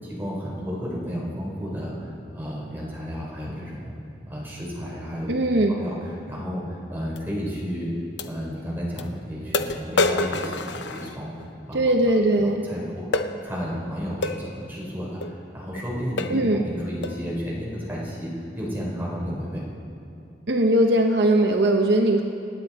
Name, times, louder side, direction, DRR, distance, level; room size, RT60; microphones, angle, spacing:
voice 1, 0.0-3.9 4.3-5.3 5.8-7.9 8.2-11.3 11.7-11.8 12.4-19.6, equal, 10° right, -6 dB, 4.1 m, -32 dB
voice 2, 5.3-5.8 11.7-12.6 16.3-16.6 20.5-22.2, right 1 dB, 70° right, 4 dB, 0.8 m, -20 dB
sound 1, 7.2-7.3 8.2-8.3 9.0-9.1 9.5-11.5 13.1-13.3 14.2-14.4 15.2-15.4 15.8-15.9 16.2-16.5 17.0-17.3, left 3 dB, 75° left, 0.7 m, -27 dB
26.5 x 9.5 x 4.2 m, 2.5 s
head